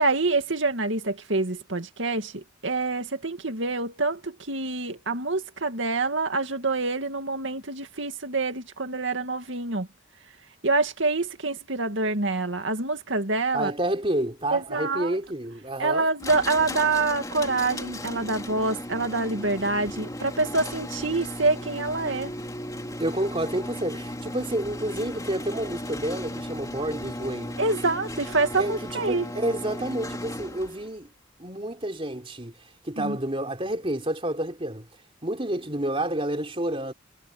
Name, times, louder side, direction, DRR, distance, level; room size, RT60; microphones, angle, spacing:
voice 1, 0.0-9.9 10.6-13.7 14.5-15.2 15.8-22.3 27.6-29.3 33.0-33.2, right 3 dB, 65° right, 2.3 m, -26 dB
voice 2, 13.5-16.1 23.0-27.5 28.6-31.1 31.4-34.9 35.2-36.9, right 1 dB, 25° right, 3.8 m, -29 dB
sound 1, 16.2-30.9, left 1 dB, 15° left, 3.4 m, -36 dB
head